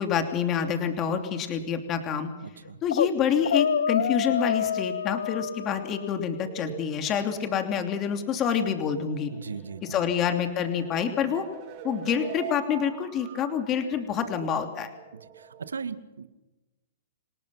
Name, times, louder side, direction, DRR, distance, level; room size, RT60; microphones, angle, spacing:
voice 1, 0.0-2.3 2.8-9.3 9.8-11.4 11.8-14.9, left 7 dB, 30° left, 6 dB, 2.9 m, -27 dB
voice 2, 2.4-2.8 9.3-10.0 15.1-16.3, right 5 dB, 85° right, 11 dB, 2.0 m, -38 dB
sound 1, 2.7-3.1 3.4-6.2, left 8 dB, 75° left, 1.0 m, -27 dB
sound 2, 6.4-15.7, right 8 dB, 40° right, 5.8 m, -45 dB
28.0 x 18.5 x 5.8 m, 1.1 s
hypercardioid pair, 125°, 0 cm